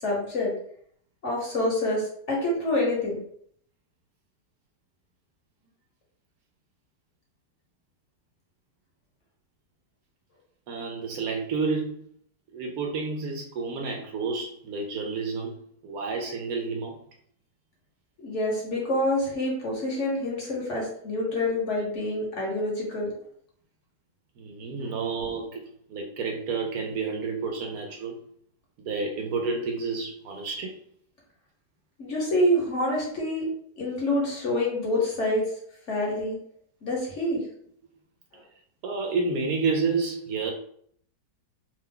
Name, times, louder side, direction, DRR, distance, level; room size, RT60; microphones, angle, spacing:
voice 1, 0.0-0.5 1.2-3.2 18.2-23.1 32.0-33.4 33.8-35.4 35.9-36.4 36.8-37.4, left 1 dB, 55° left, -2 dB, 1.0 m, -27 dB
voice 2, 10.7-12.1 12.5-15.5 15.8-17.0 24.4-28.2 28.8-30.7 38.8-40.5, right 4 dB, 70° right, 2 dB, 0.9 m, -30 dB
2.8 x 2.2 x 3.6 m, 0.64 s
omnidirectional pair, 1.8 m